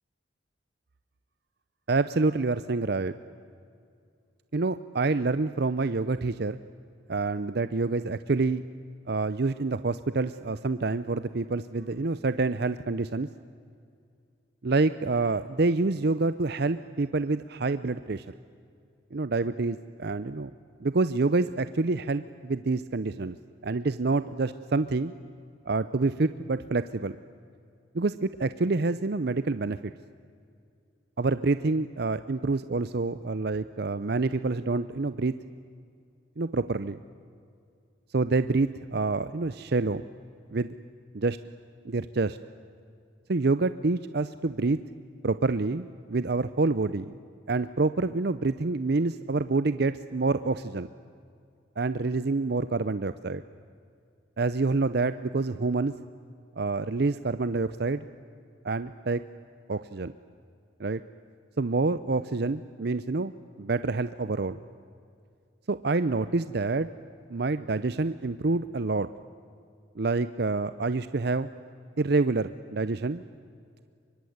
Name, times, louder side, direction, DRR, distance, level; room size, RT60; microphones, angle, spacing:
voice 1, 1.9-3.1 4.5-6.6 7.1-8.6 9.1-13.3 14.6-18.3 19.1-20.5 20.8-23.4 23.6-25.1 25.7-27.2 27.9-29.9 31.2-35.3 36.4-37.0 38.1-40.1 40.5-40.7 41.1-41.4 41.8-42.4 43.3-44.8 45.2-47.2 47.5-50.9 51.8-53.4 54.4-56.0 56.6-58.1 58.6-59.2 59.7-60.1 60.8-61.0 61.6-63.3 63.6-64.6 65.7-66.9 67.3-69.1 70.0-71.5 72.0-73.2, right 3 dB, 55° right, 13 dB, 0.6 m, -27 dB
24.5 x 23.5 x 9.5 m, 2.4 s
head